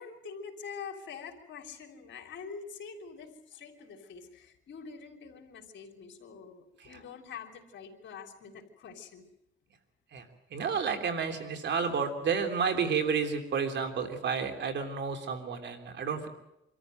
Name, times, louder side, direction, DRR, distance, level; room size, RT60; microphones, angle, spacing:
voice 1, 0.0-9.2, left 6 dB, 70° left, 3 dB, 3.6 m, -45 dB
voice 2, 10.5-16.3, right 6 dB, 65° right, 5 dB, 3.4 m, -31 dB
25.5 x 14.0 x 9.1 m, 0.88 s
cardioid pair, 90°, 20 cm